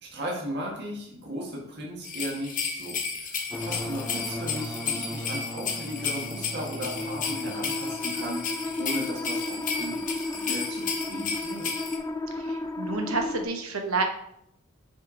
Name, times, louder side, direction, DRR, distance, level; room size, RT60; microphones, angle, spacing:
voice 1, 0.0-11.8, equal, 50° right, -2 dB, 1.6 m, -36 dB
sound 1, 2.0-12.0, left 5 dB, 40° left, 1.1 m, -33 dB
sound 2, 3.5-13.4, left 2 dB, 15° left, 0.4 m, -34 dB
voice 2, 12.3-14.0, right 3 dB, 70° right, 4 dB, 1.1 m, -29 dB
6.5 x 4.9 x 3.9 m, 0.75 s
head